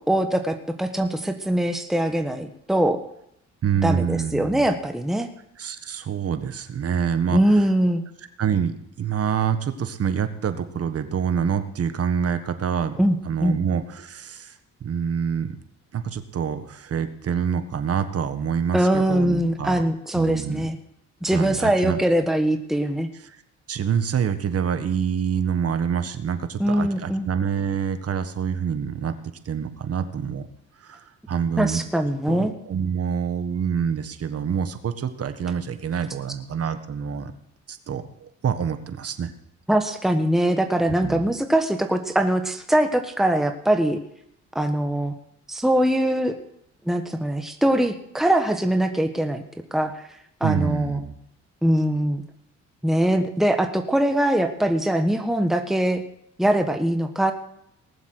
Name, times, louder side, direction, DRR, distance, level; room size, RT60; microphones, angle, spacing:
voice 1, 0.1-3.0 3.8-5.3 7.3-8.0 13.0-13.6 18.7-20.8 21.2-23.1 26.6-27.3 31.6-32.5 39.7-44.0 44.5-45.1 45.5-46.4 46.9-49.4 49.7-50.1 50.4-51.0 51.6-52.2 52.8-56.0 56.4-57.3, right 1 dB, ahead, 6 dB, 1.3 m, -22 dB
voice 2, 3.6-4.7 5.6-7.5 8.4-13.0 13.2-14.5 14.8-15.5 15.9-19.8 20.1-20.7 21.3-22.0 23.7-29.1 29.4-30.5 30.8-31.0 31.3-31.8 32.3-37.3 37.7-39.3 41.0-41.2 50.4-51.1, right 7 dB, 50° right, 10 dB, 1.5 m, -26 dB
19.0 x 7.4 x 7.8 m, 0.76 s
cardioid pair, 90°, 30 cm